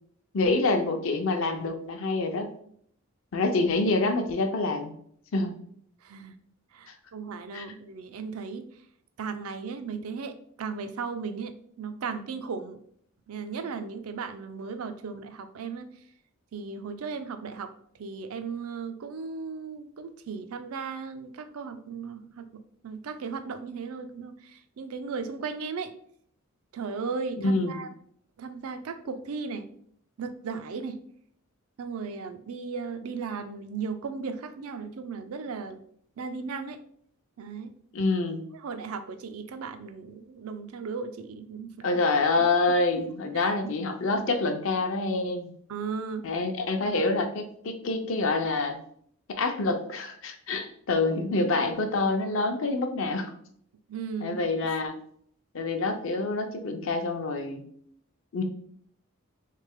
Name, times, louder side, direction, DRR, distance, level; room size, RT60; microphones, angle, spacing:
voice 1, 0.3-2.5 3.3-4.9 5.3-5.6 7.5-7.7 27.4-27.7 37.9-38.4 41.8-45.5 46.2-48.8 49.3-53.3 54.2-55.0 55.5-57.6 58.3-58.4, left 3 dB, 65° left, 6 dB, 0.5 m, -26 dB
voice 2, 6.0-6.4 6.7-8.8 9.2-12.8 13.3-15.9 16.5-25.9 26.7-27.9 28.4-29.7 30.2-31.0 31.8-35.8 36.2-36.8 37.4-37.7 38.6-41.9 42.3-42.4 43.0-43.1 43.3-43.5 45.7-46.3 53.9-54.4, right 5 dB, 80° right, 9 dB, 0.4 m, -36 dB
3.3 x 3.2 x 3.5 m, 0.64 s
head